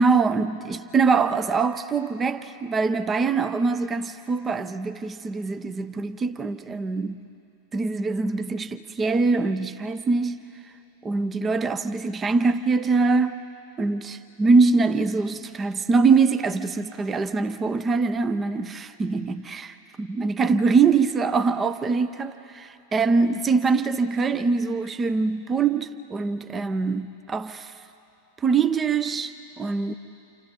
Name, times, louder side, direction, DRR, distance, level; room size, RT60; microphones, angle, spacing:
voice 1, 0.0-7.2 7.7-10.4 11.0-13.4 13.8-27.7 28.4-29.9, right 4 dB, 20° right, 0.7 m, -23 dB
29.5 x 27.0 x 4.4 m
figure-of-eight pair, 90°, 0 cm